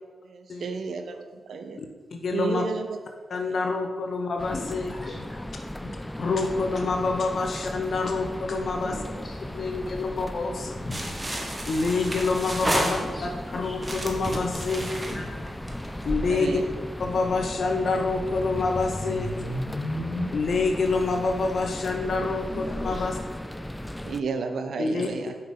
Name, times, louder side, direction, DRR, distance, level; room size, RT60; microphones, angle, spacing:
voice 1, 0.2-1.8 2.3-3.0 3.6-3.7 9.9-10.0 16.3-16.6 24.0-25.3, right 5 dB, 75° right, 7 dB, 0.5 m, -32 dB
voice 2, 1.8-2.6 3.3-5.2 6.2-9.0 9.5-10.9 11.7-15.1 16.0-16.6 17.0-19.6 20.3-23.2 24.8-25.1, left 3 dB, 65° left, 3 dB, 0.6 m, -27 dB
sound 1, 4.4-24.2, left 1 dB, 10° left, 0.3 m, -36 dB
voice 3, 4.9-6.3 8.8-9.7 10.8-11.3 12.7-13.9 15.1-15.5 22.1-23.1, left 1 dB, 30° left, -2 dB, 1.9 m, -40 dB
sound 2, 10.9-13.4 13.8-16.0, right 1 dB, 30° right, 1.1 m, -31 dB
sound 3, 13.3-20.3, left 1 dB, 80° left, 1.3 m, -38 dB
5.8 x 5.4 x 3.7 m, 1.4 s
supercardioid pair, 50°, 0 cm